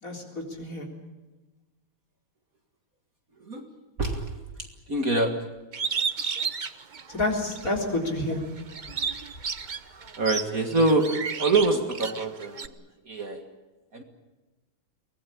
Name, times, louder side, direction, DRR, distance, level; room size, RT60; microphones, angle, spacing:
voice 1, 0.0-0.9 7.1-8.4, left 2 dB, 40° left, 1 dB, 4.3 m, -29 dB
voice 2, 4.0-4.4 4.9-5.3 10.2-12.7 13.1-13.4 13.9-14.0, right 2 dB, 45° right, 5 dB, 2.2 m, -25 dB
Bird, 5.7-7.7 8.2-12.7, right 5 dB, 65° right, 0.4 m, -32 dB
23.5 x 19.5 x 8.6 m, 1.2 s
omnidirectional pair, 2.2 m